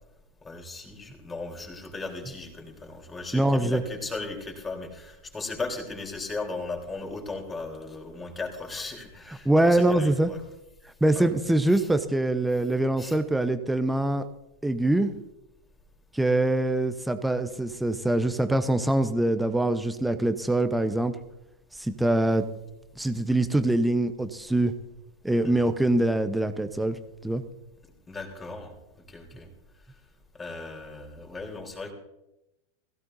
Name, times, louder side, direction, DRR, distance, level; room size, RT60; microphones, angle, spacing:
voice 1, 0.4-10.4 11.1-11.3 11.7-11.9 13.0-13.2 25.4-25.7 28.1-28.7 29.1-29.5 30.4-31.9, left 3 dB, 15° left, 2 dB, 3.8 m, -37 dB
voice 2, 3.3-3.8 9.4-10.3 11.0-14.2 14.6-15.1 16.1-21.1 21.8-22.4 23.0-24.7 25.2-27.4, right 1 dB, 5° right, 10 dB, 0.9 m, -24 dB
21.0 x 16.0 x 2.7 m, 0.91 s
figure-of-eight pair, 90°, 0 cm